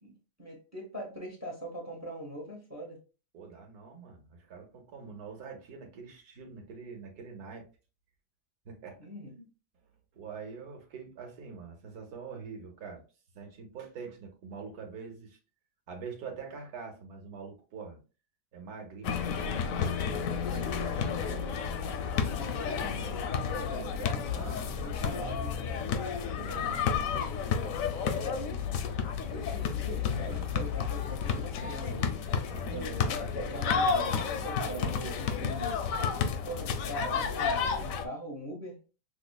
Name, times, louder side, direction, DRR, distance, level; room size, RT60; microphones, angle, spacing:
voice 1, 0.0-3.0 9.0-9.5 22.1-24.1 24.7-25.8 26.5-27.3 27.9-28.7 29.3-32.1 32.7-35.8 36.4-38.8, right 1 dB, 25° right, 1 dB, 0.3 m, -42 dB
voice 2, 3.3-7.7 8.6-9.0 10.1-13.0 13.3-15.4 15.9-18.0 18.5-21.6 24.1-24.8 26.3-27.1 30.3-30.6 32.5-32.9, right 5 dB, 70° right, 2 dB, 1.5 m, -45 dB
sound 1, 19.0-38.1, left 6 dB, 70° left, 0.9 m, -31 dB
5.8 x 2.0 x 2.2 m, 0.34 s
omnidirectional pair, 1.7 m